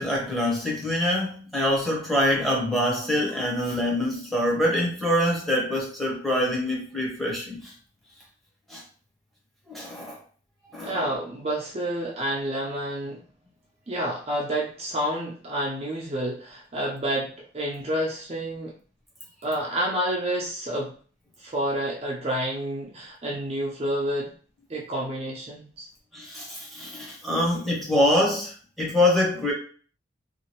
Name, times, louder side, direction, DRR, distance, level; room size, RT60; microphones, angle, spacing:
voice 1, 0.0-7.7 8.7-8.8 9.7-10.2 10.7-11.1 26.1-29.5, left 1 dB, ahead, -4 dB, 0.9 m, -25 dB
voice 2, 10.8-13.2 13.9-18.7 19.4-20.9 21.4-24.3 24.7-25.9, right 1 dB, 30° right, -3 dB, 0.5 m, -29 dB
2.8 x 2.4 x 2.9 m, 0.42 s
head